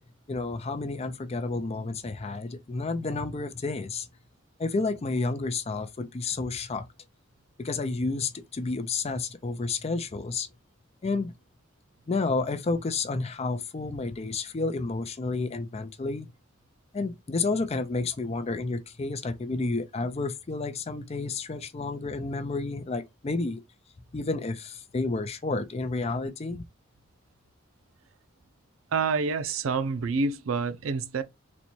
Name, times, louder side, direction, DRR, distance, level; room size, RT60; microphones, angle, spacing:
voice 1, 0.3-4.1 4.6-6.9 7.6-10.5 11.0-11.3 12.1-16.3 16.9-23.6 24.1-26.6, left 3 dB, 30° left, 0.4 m, -30 dB
voice 2, 28.9-31.2, right 4 dB, 85° right, 0.5 m, -27 dB
4.0 x 2.2 x 2.9 m
head